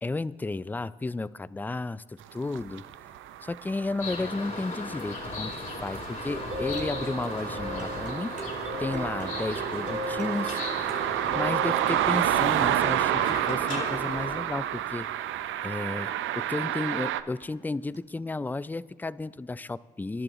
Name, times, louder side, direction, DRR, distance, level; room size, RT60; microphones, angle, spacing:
voice 1, 0.0-2.8 3.4-8.3 8.8-11.1 11.3-15.1 15.6-20.2, left 3 dB, 10° left, 18 dB, 0.3 m, -33 dB
sound 1, 2.5-17.2, right 11 dB, 80° right, 0.6 m, -30 dB
sound 2, 4.0-14.4, left 3 dB, 40° left, 3.7 m, -37 dB
sound 3, 6.3-13.2 17.4-17.5 17.9-18.0, equal, 35° right, 2.4 m, -38 dB
25.0 x 12.0 x 3.0 m, 1.5 s
cardioid pair, 90°, 20 cm